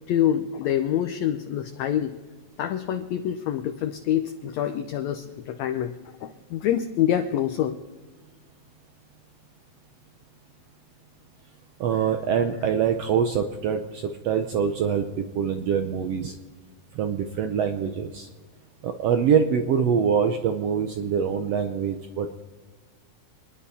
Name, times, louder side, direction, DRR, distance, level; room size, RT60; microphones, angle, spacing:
voice 1, 0.1-2.2 2.6-5.9 6.2-7.8, left 10 dB, 80° left, 7 dB, 1.6 m, -26 dB
voice 2, 11.8-16.3 16.9-18.3 18.8-22.4, right 7 dB, 80° right, 6 dB, 1.4 m, -24 dB
27.0 x 10.5 x 4.2 m, 1.4 s
omnidirectional pair, 3.8 m